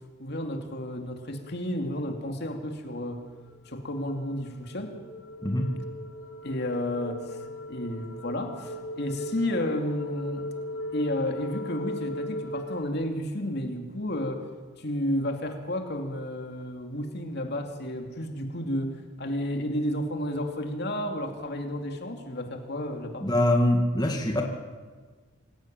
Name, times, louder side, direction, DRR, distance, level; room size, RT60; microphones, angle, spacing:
voice 1, 0.2-3.2 3.7-4.9 6.4-7.4 7.7-10.5 10.9-14.4 14.8-23.3, left 1 dB, 55° left, 4 dB, 2.7 m, -32 dB
sound 1, 3.2-12.8, left 1 dB, 80° left, 2.5 m, -38 dB
voice 2, 23.2-24.4, left 1 dB, 20° left, 1 dB, 2.2 m, -23 dB
26.5 x 16.5 x 9.0 m, 1.5 s
head